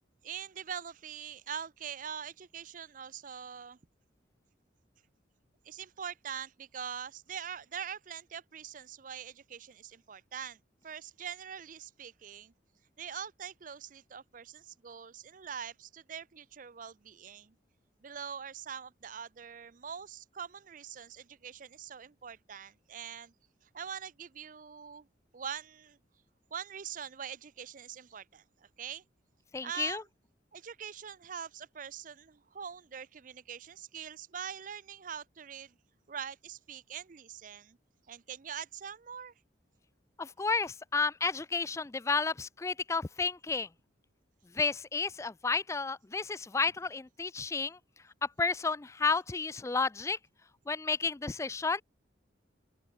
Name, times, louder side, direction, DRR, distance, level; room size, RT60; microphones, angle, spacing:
voice 1, 0.2-3.8 5.6-12.5 13.0-17.5 18.0-23.3 23.6-25.1 25.3-26.0 26.5-29.0 29.6-30.0 30.5-35.8 36.1-37.8 38.1-39.3, right 7 dB, 45° right, 0.5 m, -43 dB
voice 2, 29.5-30.0 40.2-43.7 44.5-47.8 48.2-50.2 50.7-51.8, left 4 dB, 15° left, 0.3 m, -31 dB
open air
head